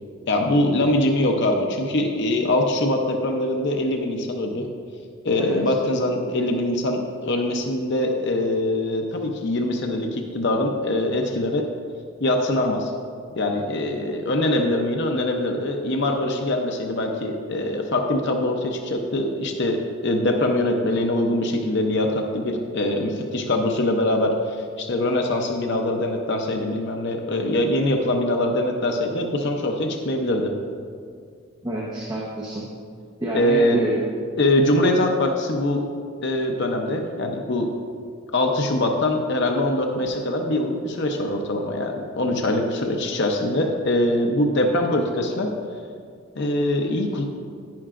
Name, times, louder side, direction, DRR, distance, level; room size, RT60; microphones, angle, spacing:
voice 1, 0.3-4.7 5.2-11.7 12.2-12.9 13.4-30.5 33.3-33.8 34.4-35.8 36.2-37.7 38.3-45.5 46.4-47.2, left 1 dB, 50° left, 3 dB, 0.6 m, -23 dB
voice 2, 31.6-32.7 33.2-34.0, right 1 dB, 20° right, -5 dB, 0.9 m, -28 dB
10.5 x 10.0 x 2.5 m, 2.2 s
head